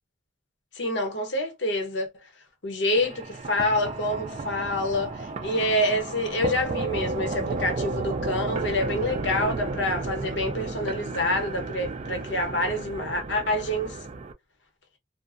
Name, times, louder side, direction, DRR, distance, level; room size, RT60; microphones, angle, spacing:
voice 1, 0.7-2.1 2.6-14.1, left 1 dB, 80° left, 1.0 m, -27 dB
sound 1, 3.0-14.3, right 3 dB, 35° right, 0.3 m, -33 dB
2.4 x 2.2 x 2.4 m
head